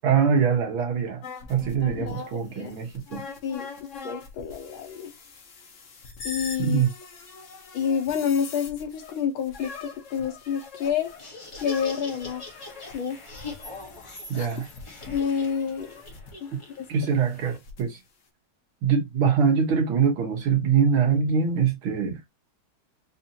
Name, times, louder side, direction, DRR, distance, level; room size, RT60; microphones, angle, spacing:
voice 1, 0.0-1.2 1.5-3.2 6.6-6.9 14.3-14.7 16.9-18.0 18.8-22.2, right 6 dB, 80° right, 2.0 m, -23 dB
sound 1, 1.2-16.3 17.2-17.8, left 4 dB, 55° left, 0.9 m, -43 dB
voice 2, 1.8-2.8 3.4-5.1 6.2-6.9 7.7-11.1 11.6-12.5 12.9-13.2 14.3-14.5 15.1-15.9 16.4-16.9, left 7 dB, 75° left, 1.8 m, -29 dB
Laughter, 11.0-17.6, left 4 dB, 30° left, 0.5 m, -43 dB
4.8 x 2.7 x 2.7 m
omnidirectional pair, 2.3 m